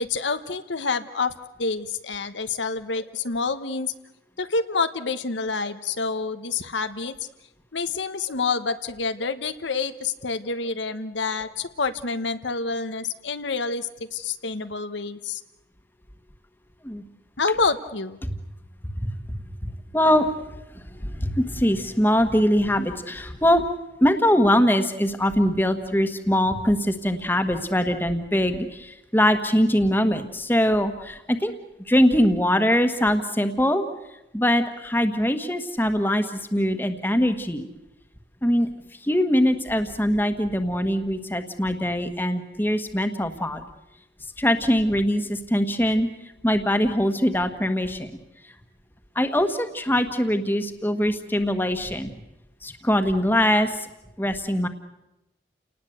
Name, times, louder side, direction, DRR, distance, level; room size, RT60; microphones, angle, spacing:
voice 1, 0.0-1.3 1.6-3.9 4.4-7.1 7.7-15.4 17.4-18.2, left 4 dB, 90° left, 10 dB, 1.2 m, -27 dB
voice 2, 19.0-19.3 19.6-23.7 24.0-31.5 31.9-33.8 34.3-37.7 38.4-38.7 39.0-43.6 44.4-46.1 46.4-48.1 49.1-52.1 52.6-53.9 54.2-54.7, equal, 10° left, 7 dB, 1.4 m, -22 dB
30.0 x 19.0 x 8.1 m, 0.93 s
head